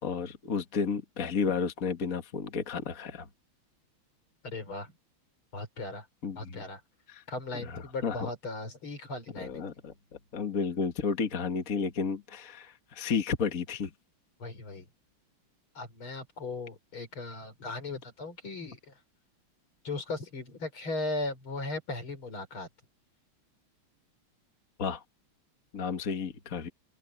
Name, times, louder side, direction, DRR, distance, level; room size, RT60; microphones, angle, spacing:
voice 1, 0.0-3.3 6.2-6.6 7.1-7.2 7.6-8.3 9.4-9.9 10.3-13.9 24.8-25.0 25.7-26.7, left 5 dB, 40° left, 1.9 m, -32 dB
voice 2, 4.4-4.9 5.5-6.1 6.4-6.8 7.3-9.6 14.4-14.9 15.8-18.9 19.8-22.7, left 2 dB, 70° left, 5.6 m, -37 dB
open air
omnidirectional pair, 2.4 m